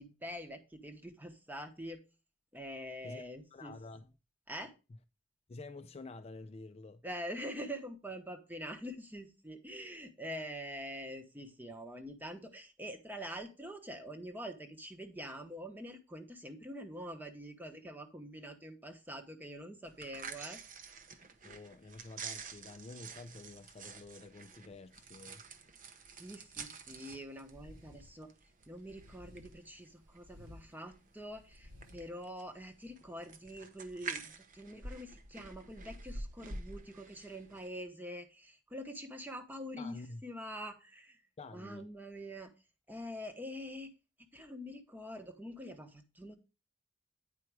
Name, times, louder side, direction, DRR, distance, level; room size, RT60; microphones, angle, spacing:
voice 1, 0.0-2.0 2.5-3.8 4.5-4.7 7.0-20.6 26.1-28.3 28.7-41.2 41.5-42.5 42.9-43.9 44.3-46.4, equal, 10° right, 1.0 m, -45 dB
voice 2, 3.5-4.1 5.5-7.0 21.4-25.4 39.8-40.2 41.4-41.9, left 3 dB, 30° left, 0.4 m, -49 dB
sound 1, 19.8-37.7, right 4 dB, 45° right, 0.8 m, -48 dB
sound 2, 27.4-28.2 28.8-29.7 30.1-30.6 31.2-32.1, left 1 dB, 75° right, 3.0 m, -56 dB
9.1 x 4.6 x 4.7 m
head